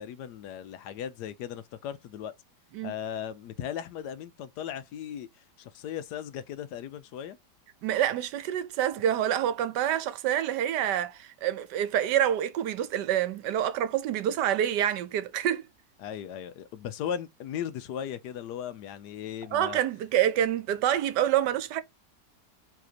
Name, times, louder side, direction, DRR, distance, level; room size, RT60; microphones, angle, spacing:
voice 1, 0.0-2.3 2.8-5.3 5.6-7.4 16.0-19.8, left 9 dB, 75° left, 1.1 m, -37 dB
voice 2, 7.8-15.7 19.5-21.8, right 11 dB, 80° right, 1.2 m, -27 dB
4.8 x 3.4 x 2.8 m
omnidirectional pair, 1.9 m